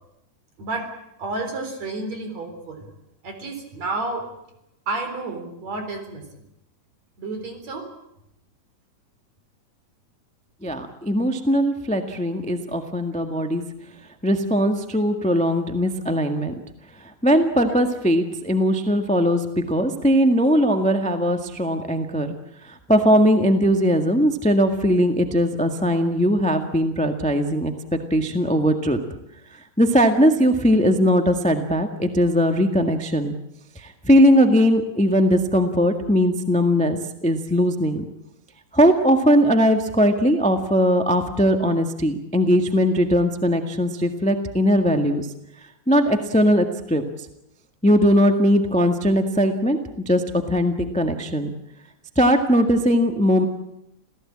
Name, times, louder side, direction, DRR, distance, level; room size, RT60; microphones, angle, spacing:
voice 1, 0.6-0.9 1.2-2.9 3.2-4.3 4.9-6.4 7.2-7.9 17.7-17.8, right 3 dB, 60° right, 6 dB, 5.2 m, -31 dB
voice 2, 10.6-13.6 14.2-16.5 17.2-22.3 22.9-29.0 29.8-33.3 33.8-38.0 38.7-45.3 45.9-47.0 47.8-49.8 50.1-50.2 50.5-51.5 52.1-53.4, equal, 5° left, 6 dB, 0.6 m, -19 dB
27.5 x 16.5 x 8.8 m, 0.84 s
omnidirectional pair, 3.5 m